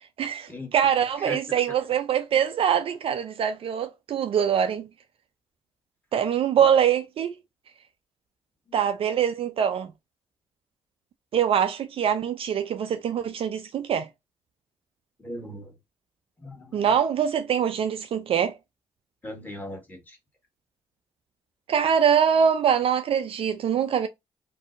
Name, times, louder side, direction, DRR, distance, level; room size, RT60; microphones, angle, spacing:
voice 1, 0.2-4.9 6.1-7.3 8.7-9.9 11.3-14.1 16.7-18.5 21.7-24.1, right 8 dB, 55° right, 0.4 m, -23 dB
voice 2, 1.2-1.6 6.6-6.7 8.7-8.9 15.2-15.7 16.4-16.9 19.2-20.2, left 1 dB, 15° left, 1.3 m, -39 dB
2.6 x 2.0 x 2.4 m
hypercardioid pair, 45°, 11 cm